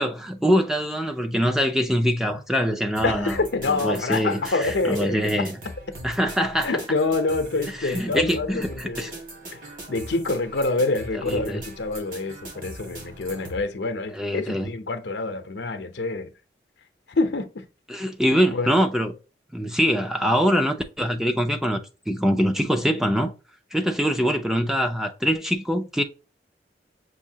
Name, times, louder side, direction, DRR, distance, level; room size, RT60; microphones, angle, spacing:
voice 1, 0.0-3.4 3.8-5.5 6.0-6.7 7.8-9.1 11.3-11.6 14.1-14.7 17.9-19.1 19.5-21.8 22.1-23.3 23.7-26.0, equal, 5° right, 0.4 m, -23 dB
voice 2, 3.0-5.5 6.6-9.2 9.5-9.6 9.9-16.3 17.1-17.6 18.3-18.7, left 3 dB, 80° left, 0.7 m, -26 dB
sound 1, 3.0-13.6, right 1 dB, 50° right, 1.8 m, -40 dB
6.2 x 2.7 x 2.8 m
head